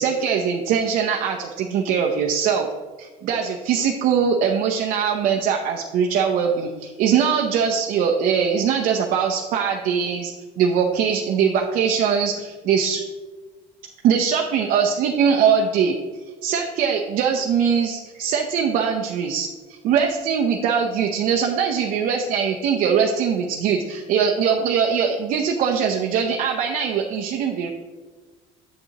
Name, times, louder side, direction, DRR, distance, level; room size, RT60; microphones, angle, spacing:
voice 1, 0.0-2.7 3.0-13.0 14.0-15.9 16.4-19.5 19.8-27.7, right 7 dB, 65° right, 2 dB, 0.7 m, -21 dB
8.1 x 7.6 x 2.9 m, 1.4 s
cardioid pair, 150°, 16 cm